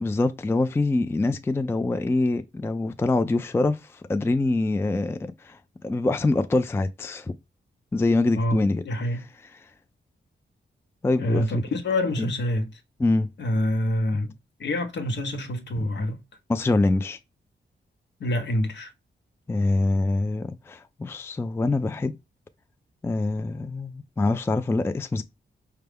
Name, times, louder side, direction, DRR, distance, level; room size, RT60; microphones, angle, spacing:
voice 1, 0.0-5.6 5.8-7.3 7.9-8.8 11.0-11.6 12.2-12.3 13.0-13.3 16.5-17.2 19.5-22.1 23.0-25.2, left 2 dB, 10° left, 0.3 m, -24 dB
voice 2, 8.8-9.3 11.2-12.8 13.4-16.2 18.2-18.9, left 1 dB, 65° left, 0.8 m, -26 dB
4.7 x 2.3 x 3.4 m
cardioid pair, 80°, 20 cm